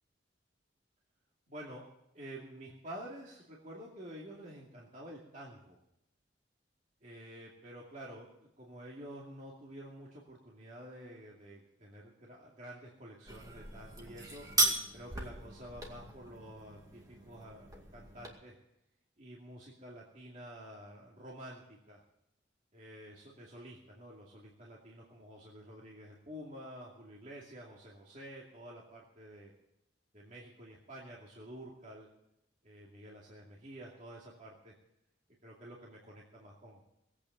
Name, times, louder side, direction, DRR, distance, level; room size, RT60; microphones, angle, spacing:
voice 1, 1.5-1.8 2.1-5.8 7.0-8.3 8.6-14.5 14.9-18.6 19.2-22.0 22.7-29.5 30.1-32.1 32.6-34.7 35.4-36.8, equal, 40° right, -4 dB, 2.5 m, -49 dB
sound 1, 13.3-18.3, right 2 dB, 20° right, 2.2 m, -36 dB
19.0 x 8.7 x 6.8 m, 0.83 s
head